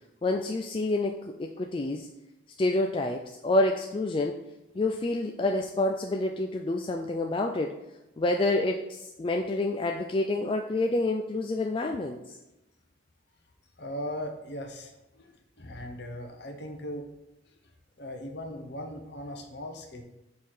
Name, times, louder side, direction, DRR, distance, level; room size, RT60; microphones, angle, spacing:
voice 1, 0.2-2.1 2.6-4.4 4.8-7.8 8.2-12.4, left 2 dB, 25° left, 2 dB, 0.3 m, -28 dB
voice 2, 13.8-17.1 18.0-20.0, equal, 55° left, 4 dB, 0.9 m, -39 dB
5.5 x 4.4 x 4.8 m, 0.92 s
head